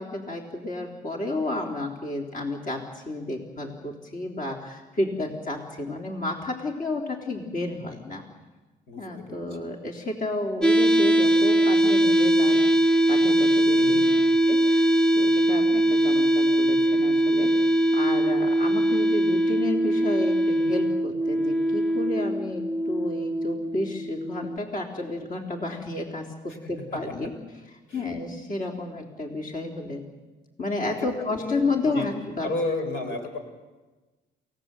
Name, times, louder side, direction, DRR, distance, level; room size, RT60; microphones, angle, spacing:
voice 1, 0.0-8.2 9.0-12.6 13.1-14.0 14.5-17.5 17.9-27.4 27.9-30.0 30.6-32.5, left 2 dB, 45° left, 1 dB, 3.8 m, -31 dB
voice 2, 8.9-9.4 13.7-14.3 27.9-28.0 31.4-31.6 31.9-32.1 32.4-33.4, left 2 dB, 75° left, 5 dB, 4.5 m, -32 dB
sound 1, 10.6-24.6, right 1 dB, 5° left, 0.8 m, -21 dB
29.0 x 17.5 x 8.0 m, 1.2 s
cardioid pair, 90°, 20 cm